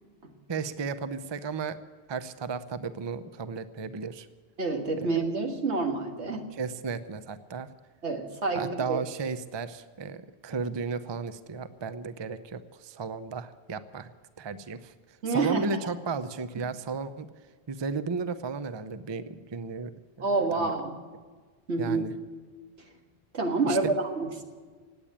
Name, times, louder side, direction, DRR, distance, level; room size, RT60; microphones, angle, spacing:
voice 1, 0.5-1.8 2.1-4.3 5.0-5.1 6.5-7.7 8.5-14.1 14.4-14.9 15.3-17.3 17.7-19.9 20.2-20.7 21.8-22.1 23.6-23.9, right 5 dB, 30° right, 12 dB, 0.6 m, -34 dB
voice 2, 4.6-6.5 8.0-9.0 15.2-15.6 20.2-21.0 21.7-22.0 23.3-23.8 24.2-24.4, right 3 dB, 85° right, 3 dB, 2.0 m, -28 dB
19.0 x 8.7 x 8.7 m, 1.5 s
omnidirectional pair, 1.1 m